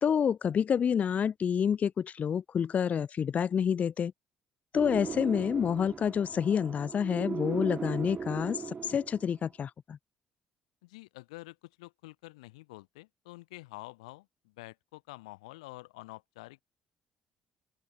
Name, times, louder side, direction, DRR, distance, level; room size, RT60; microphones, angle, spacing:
voice 1, 0.0-4.1 4.7-10.0, left 7 dB, 50° left, 0.5 m, -28 dB
sound 1, 4.7-9.4, right 5 dB, 40° right, 1.7 m, -38 dB
voice 2, 10.8-16.6, left 21 dB, 85° left, 1.2 m, -48 dB
open air
hypercardioid pair, 55°, 3 cm